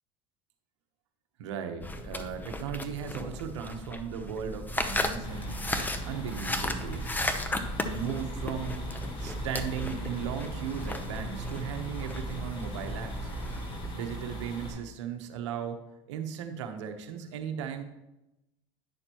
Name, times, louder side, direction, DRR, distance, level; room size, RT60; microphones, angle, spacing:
voice 1, 1.4-7.1 7.8-8.8 9.2-13.3 13.9-15.8 16.1-17.8, right 8 dB, 85° right, 7 dB, 1.1 m, -37 dB
sound 1, 1.8-13.9, left 1 dB, 10° left, 0.8 m, -35 dB
sound 2, 5.2-14.7, right 1 dB, 35° left, 3.2 m, -40 dB
10.0 x 6.6 x 3.0 m, 0.92 s
supercardioid pair, 95°, 15 cm